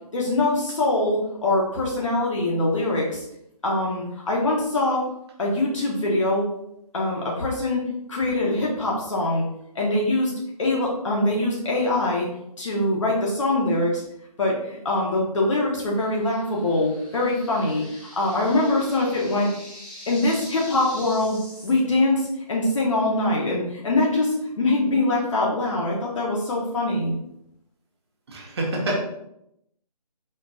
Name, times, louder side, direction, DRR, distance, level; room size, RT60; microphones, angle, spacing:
voice 1, 0.1-3.2 3.6-5.1 5.4-6.5 6.9-9.4 9.7-10.3 10.6-12.3 12.6-14.0 14.4-17.8 18.2-19.5 20.1-27.1, left 2 dB, 50° left, -3 dB, 1.2 m, -23 dB
sound 1, 15.9-21.8, equal, 5° left, 1.0 m, -44 dB
voice 2, 28.3-29.0, right 1 dB, 40° right, -2 dB, 1.3 m, -26 dB
4.6 x 4.5 x 2.5 m, 0.78 s
figure-of-eight pair, 155°, 21 cm